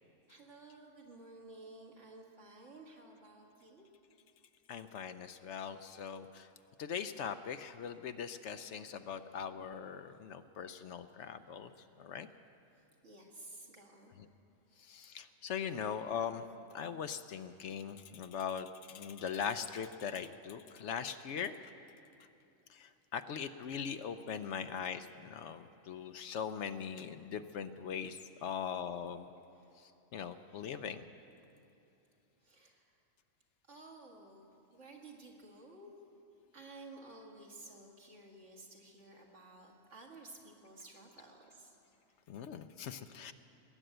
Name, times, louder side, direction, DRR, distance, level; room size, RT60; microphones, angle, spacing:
voice 1, 0.3-3.9 8.8-9.2 13.0-14.1 14.7-15.1 28.4-28.7 29.5-29.8 30.3-30.8 32.4-32.9 33.7-34.5 34.7-35.9 36.5-41.8, right 2 dB, 65° right, -1 dB, 2.3 m, -54 dB
voice 2, 4.7-6.5 6.8-11.7 12.0-12.3 14.2-14.3 14.8-16.5 16.7-21.7 22.7-29.3 30.1-31.1 42.3-43.3, left 7 dB, 70° left, 10 dB, 0.8 m, -41 dB
20.0 x 9.0 x 7.8 m, 2.8 s
omnidirectional pair, 1.3 m